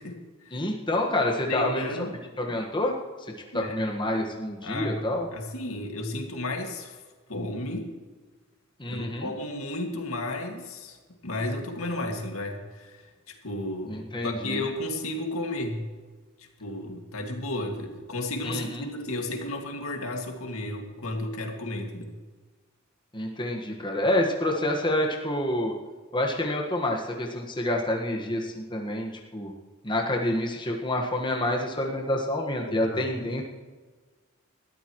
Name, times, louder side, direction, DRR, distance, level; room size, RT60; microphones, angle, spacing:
voice 1, 0.0-0.6 1.4-2.1 3.5-3.8 4.6-7.0 7.3-8.0 8.9-11.0 11.2-15.9 16.4-22.1 32.7-33.1, left 1 dB, 85° left, 2 dB, 2.2 m, -33 dB
voice 2, 0.5-1.9 2.4-3.0 3.5-5.3 8.8-9.3 13.9-14.6 18.4-18.8 23.1-25.7 26.1-29.5 29.8-33.4, left 1 dB, 25° left, 0 dB, 1.6 m, -28 dB
20.5 x 13.5 x 3.2 m, 1.4 s
head